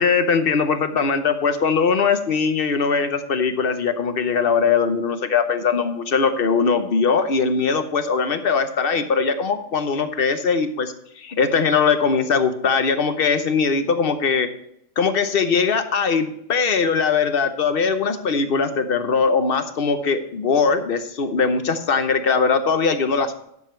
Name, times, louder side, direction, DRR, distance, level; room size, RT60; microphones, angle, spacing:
voice 1, 0.0-14.5 15.0-23.5, left 5 dB, 50° left, 9 dB, 1.0 m, -21 dB
11.0 x 7.2 x 4.4 m, 0.75 s
omnidirectional pair, 1.4 m